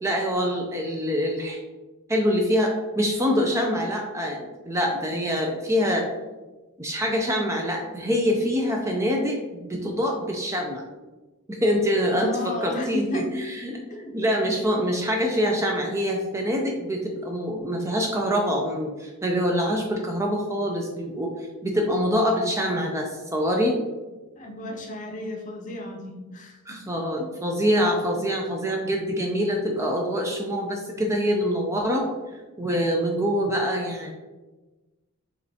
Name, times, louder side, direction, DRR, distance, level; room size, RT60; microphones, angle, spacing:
voice 1, 0.0-1.6 2.1-6.0 6.8-10.8 11.5-13.8 14.1-21.3 21.6-23.8 26.7-32.1 32.6-34.1, equal, 15° right, 1 dB, 0.4 m, -25 dB
voice 2, 12.0-13.3 13.9-14.2 24.4-26.8, left 1 dB, 35° left, 1 dB, 0.7 m, -33 dB
5.4 x 3.2 x 2.7 m, 1.2 s
head